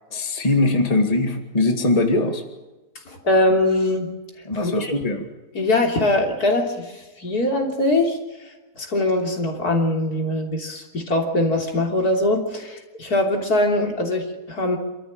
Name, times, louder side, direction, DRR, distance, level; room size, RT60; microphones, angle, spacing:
voice 1, 0.1-2.4 4.5-5.3, left 2 dB, 25° left, 4 dB, 2.1 m, -21 dB
voice 2, 3.1-4.1 4.6-4.9 5.5-8.5 8.8-14.8, left 1 dB, 70° left, 2 dB, 3.7 m, -22 dB
27.0 x 14.0 x 8.7 m, 1.2 s
omnidirectional pair, 1.7 m